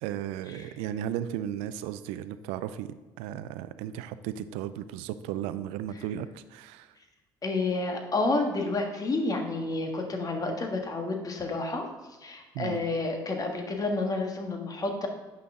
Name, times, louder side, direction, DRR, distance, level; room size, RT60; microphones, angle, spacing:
voice 1, 0.0-2.9 3.2-6.9 12.5-12.8, right 11 dB, 85° right, 13 dB, 0.4 m, -35 dB
voice 2, 7.4-11.9 12.2-15.1, left 3 dB, 35° left, 3 dB, 1.5 m, -30 dB
8.6 x 5.7 x 3.7 m, 1.2 s
supercardioid pair, 70°, 10 cm